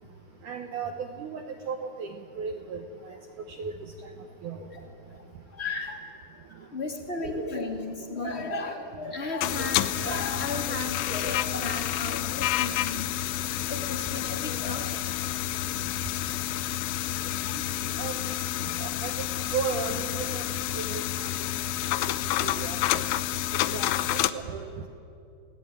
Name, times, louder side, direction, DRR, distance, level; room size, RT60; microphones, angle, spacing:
voice 1, 0.4-3.2 3.6-3.7 4.4-4.6 17.5-17.6 18.0-18.1 18.8-19.3 19.5-21.3 22.4-23.0 23.7-24.9, right 6 dB, 70° right, 4 dB, 2.0 m, -35 dB
voice 2, 4.6-6.0 6.4-15.0, left 2 dB, 20° left, 1 dB, 2.0 m, -35 dB
sound 1, 9.4-24.3, left 13 dB, 85° left, 2.9 m, -29 dB
29.0 x 17.5 x 9.2 m, 2.6 s
omnidirectional pair, 5.0 m